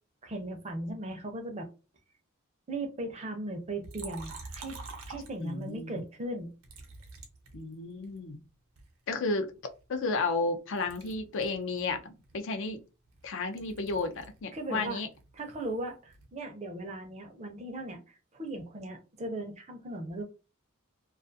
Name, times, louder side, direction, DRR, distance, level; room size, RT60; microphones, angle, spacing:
voice 1, 0.2-1.7 2.7-4.8 5.1-6.5 14.5-15.0 15.3-20.2, right 1 dB, 30° right, 0.5 m, -38 dB
Liquid, 3.8-5.8 6.6-8.2 8.8-10.5 10.8-14.4 14.7-16.4, right 3 dB, 80° right, 0.7 m, -48 dB
voice 2, 5.4-6.0 7.5-8.4 9.1-9.5 9.9-12.8 13.2-15.1, left 3 dB, 60° left, 0.4 m, -32 dB
2.3 x 2.3 x 2.6 m
head